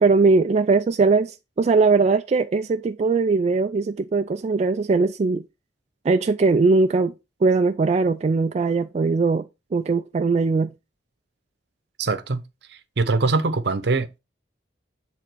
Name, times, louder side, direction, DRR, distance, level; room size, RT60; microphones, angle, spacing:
voice 1, 0.0-5.4 6.0-7.1 7.4-9.5 9.7-10.7, right 4 dB, 40° right, 0.3 m, -20 dB
voice 2, 12.0-12.4 12.7-14.2, right 3 dB, 65° right, 0.8 m, -23 dB
8.1 x 3.6 x 4.5 m
head